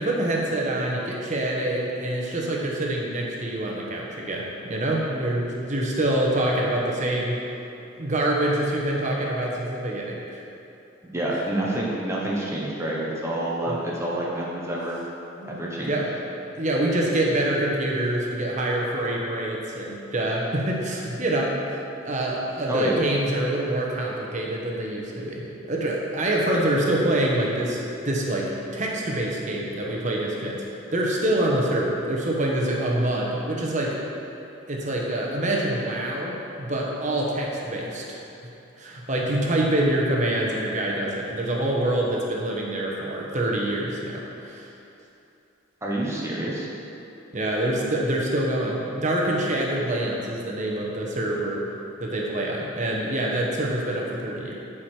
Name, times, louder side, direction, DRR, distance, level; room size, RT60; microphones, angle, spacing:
voice 1, 0.0-7.4 8.0-10.4 13.7-13.8 15.4-15.5 15.9-16.1 16.5-27.8 28.0-30.6 30.9-33.9 34.7-38.2 38.8-44.7 47.3-51.6 52.0-54.5, right 1 dB, 35° right, -2 dB, 1.1 m, -26 dB
voice 2, 11.0-15.0 15.4-16.0 22.7-22.9 45.8-46.7, right 1 dB, 15° right, -5 dB, 1.1 m, -28 dB
12.0 x 5.0 x 4.5 m, 2.8 s
head